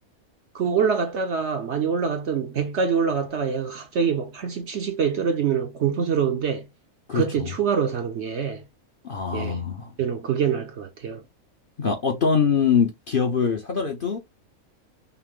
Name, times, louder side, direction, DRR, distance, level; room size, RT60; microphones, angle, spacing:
voice 1, 0.5-6.7 7.1-8.7 9.3-9.6 10.0-11.2, right 6 dB, 60° right, 0.8 m, -25 dB
voice 2, 7.1-7.5 9.0-9.9 11.8-14.2, left 6 dB, 45° left, 0.7 m, -23 dB
5.7 x 2.0 x 3.6 m
omnidirectional pair, 1.6 m